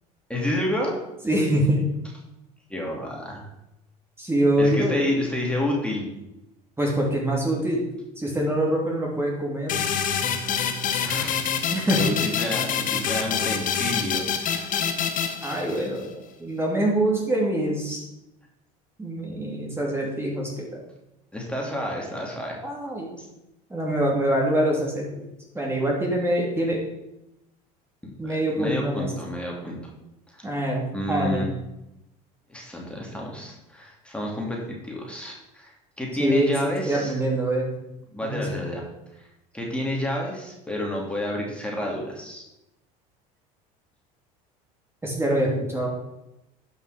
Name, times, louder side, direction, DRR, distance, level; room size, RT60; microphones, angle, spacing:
voice 1, 0.3-1.0 2.7-3.5 4.6-6.1 11.0-11.5 12.0-14.9 21.3-22.6 23.2-23.3 28.2-29.8 30.3-30.5 30.9-31.4 32.5-37.1 38.1-38.8 39.2-39.3 39.5-42.4, left 1 dB, 5° left, -2 dB, 2.7 m, -30 dB
voice 2, 1.2-1.8 4.2-5.0 6.8-7.8 8.2-9.8 11.7-12.0 15.4-18.0 19.0-20.8 22.6-23.2 23.7-25.3 25.5-26.8 28.2-29.1 30.4-31.5 36.2-37.7 38.2-38.6 45.0-45.9, right 1 dB, 15° right, -2 dB, 2.7 m, -25 dB
sound 1, 9.7-16.1, left 7 dB, 45° left, 1.3 m, -26 dB
11.0 x 5.6 x 5.0 m, 0.90 s
supercardioid pair, 90°, 19 cm